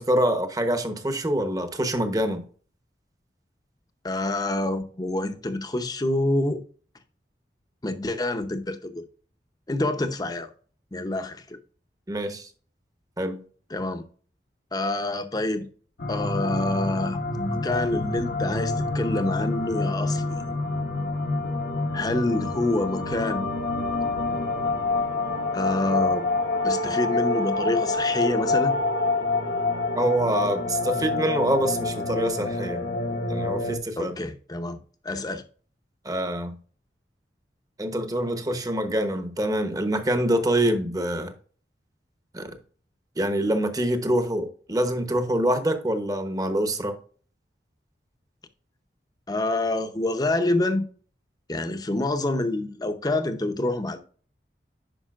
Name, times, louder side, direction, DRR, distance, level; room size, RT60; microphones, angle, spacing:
voice 1, 0.0-2.4 12.1-12.5 13.2-13.4 30.0-32.8 33.3-34.2 36.0-36.6 37.8-41.3 42.3-42.5 43.2-47.0, right 1 dB, 20° right, 0.9 m, -25 dB
voice 2, 4.0-6.6 7.8-9.0 9.7-10.5 10.9-11.6 13.7-14.0 14.7-15.7 16.1-20.4 21.9-23.4 25.5-26.2 26.6-28.7 34.0-34.8 35.0-35.4 49.3-50.9 51.5-54.0, left 2 dB, 20° left, 0.7 m, -27 dB
sound 1, 16.0-33.8, left 3 dB, 65° left, 1.0 m, -27 dB
10.0 x 5.5 x 2.4 m
head